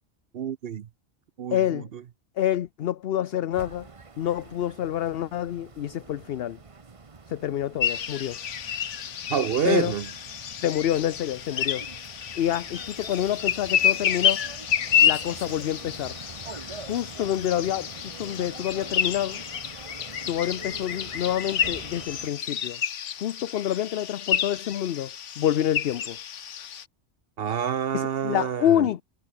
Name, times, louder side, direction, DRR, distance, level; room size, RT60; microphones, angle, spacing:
voice 1, 0.3-0.9 1.4-2.0 9.3-10.1 27.4-28.9, right 8 dB, 60° right, 0.9 m, -28 dB
voice 2, 1.5-1.9 2.4-3.9 4.2-6.6 7.3-8.4 9.6-9.9 10.6-11.9 12.4-14.5 15.0-16.2 16.8-17.9 18.2-19.4 20.2-22.8 23.2-26.2 27.9-29.0, left 11 dB, 65° left, 0.8 m, -27 dB
sound 1, 3.5-22.3, right 4 dB, 30° right, 1.0 m, -45 dB
sound 2, 7.8-26.8, left 8 dB, 90° left, 1.3 m, -29 dB
omnidirectional pair, 1.2 m